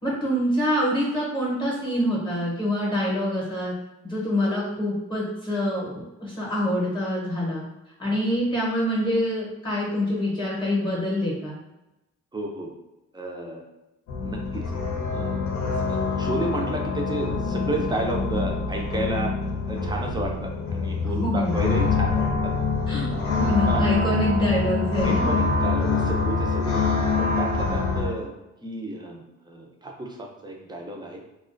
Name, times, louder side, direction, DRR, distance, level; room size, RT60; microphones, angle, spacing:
voice 1, 0.0-3.7 4.0-7.6 8.0-11.6 21.0-21.6 22.9-25.4, equal, 15° left, -5 dB, 0.7 m, -26 dB
voice 2, 12.3-12.7 13.1-13.6 14.2-14.7 15.1-15.4 15.9-19.3 19.7-22.5 23.1-23.9 25.0-26.8 27.2-28.4 28.6-31.2, right 1 dB, 15° right, 0 dB, 0.4 m, -32 dB
sound 1, 14.1-28.1, left 4 dB, 70° left, 0.6 m, -25 dB
2.3 x 2.2 x 2.4 m, 0.95 s
cardioid pair, 105°, 30 cm